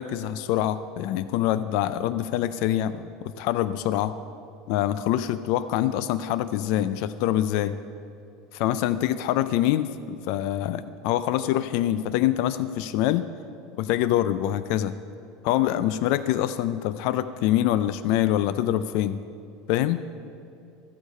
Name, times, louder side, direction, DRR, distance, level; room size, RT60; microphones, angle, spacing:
voice 1, 0.0-4.1 4.7-7.7 8.5-13.3 13.8-15.0 15.4-19.2 19.7-20.0, left 12 dB, 65° left, 14 dB, 0.4 m, -25 dB
13.0 x 8.3 x 5.4 m, 2.6 s
supercardioid pair, 135°, 0 cm